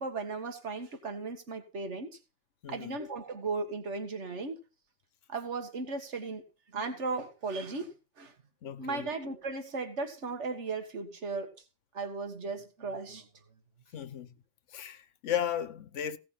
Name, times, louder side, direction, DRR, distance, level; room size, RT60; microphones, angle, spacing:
voice 1, 0.0-2.2 2.7-4.6 5.3-6.4 6.7-8.3 8.8-11.5 11.9-13.3, right 3 dB, 65° right, 2.0 m, -36 dB
voice 2, 2.6-3.0 8.6-9.1 13.9-14.3 14.7-16.2, left 10 dB, 75° left, 1.2 m, -35 dB
16.5 x 5.7 x 5.8 m
omnidirectional pair, 1.3 m